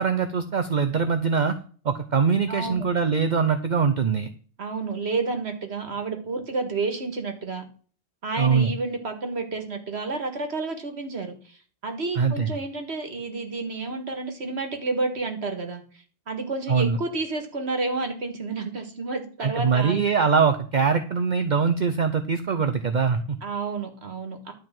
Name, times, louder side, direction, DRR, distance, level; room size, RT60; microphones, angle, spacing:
voice 1, 0.0-1.6 1.8-4.3 8.4-8.7 12.2-12.5 16.7-17.0 19.4-23.4, right 5 dB, 50° right, 8 dB, 0.8 m, -22 dB
voice 2, 2.5-2.8 4.6-7.6 8.2-11.6 11.8-15.8 16.3-20.0 23.4-24.5, right 3 dB, 80° right, 5 dB, 2.0 m, -30 dB
11.5 x 4.7 x 7.5 m, 0.42 s
omnidirectional pair, 1.1 m